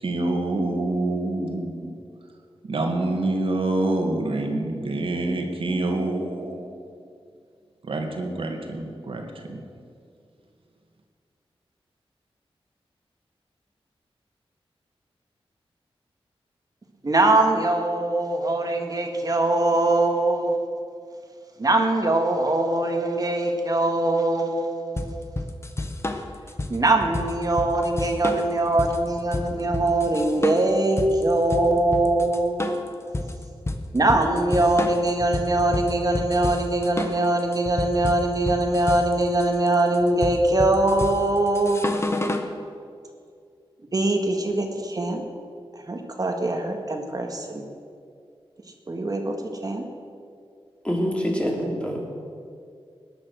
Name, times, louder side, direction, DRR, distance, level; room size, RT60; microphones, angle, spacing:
voice 1, 0.0-2.0 2.6-6.7 7.8-9.6, right 2 dB, 65° right, 3 dB, 2.2 m, -26 dB
voice 2, 17.0-20.6 21.6-25.1 26.7-32.8 33.9-41.8 43.9-45.2 45.9-47.6 48.9-49.4 49.6-49.8, right 2 dB, 40° right, 3 dB, 1.9 m, -22 dB
sound 1, 25.0-42.5, left 2 dB, 25° left, 1.2 m, -30 dB
voice 3, 50.8-52.2, equal, 10° left, -1 dB, 3.2 m, -26 dB
19.0 x 10.5 x 6.4 m, 2.3 s
wide cardioid pair, 95°, 10 cm